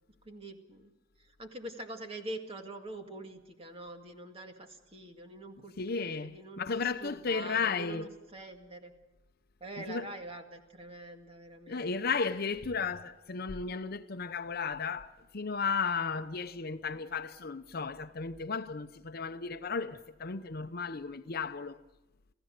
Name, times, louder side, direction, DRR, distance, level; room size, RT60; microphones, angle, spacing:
voice 1, 0.3-0.9 1.4-8.9 9.6-12.2, right 2 dB, 30° right, 2.0 m, -45 dB
voice 2, 5.8-8.1 9.9-10.1 11.7-21.8, left 5 dB, 50° left, 0.7 m, -34 dB
27.5 x 16.0 x 6.6 m
head